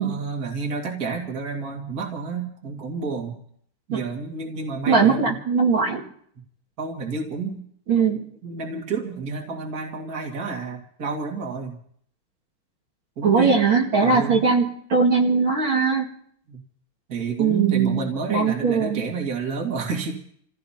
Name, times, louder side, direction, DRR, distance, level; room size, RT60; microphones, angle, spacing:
voice 1, 0.0-3.3 3.9-5.3 6.8-7.6 8.4-11.8 13.2-13.6 14.0-14.4 16.5-16.6 17.1-20.3, right 4 dB, 40° right, 1 dB, 2.6 m, -30 dB
voice 2, 4.9-6.0 7.9-8.2 13.2-16.1 17.4-18.0 18.3-19.0, right 5 dB, 60° right, -3 dB, 2.9 m, -20 dB
29.0 x 16.0 x 2.9 m, 0.64 s
omnidirectional pair, 2.4 m